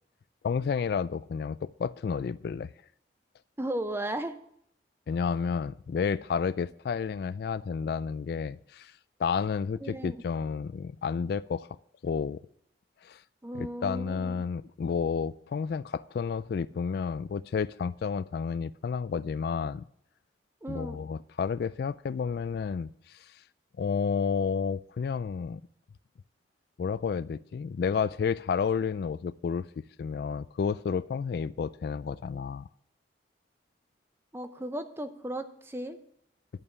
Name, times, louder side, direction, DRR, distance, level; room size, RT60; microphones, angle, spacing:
voice 1, 0.4-2.7 5.1-8.9 9.2-11.7 12.0-12.4 13.0-13.2 13.5-19.8 20.7-23.2 23.8-25.6 26.8-29.7 30.0-32.7, left 6 dB, 60° left, 0.3 m, -31 dB
voice 2, 3.6-4.4 9.8-10.2 13.4-14.4 20.6-21.0 34.3-36.0, right 1 dB, 15° right, 0.7 m, -35 dB
11.0 x 5.6 x 8.1 m
head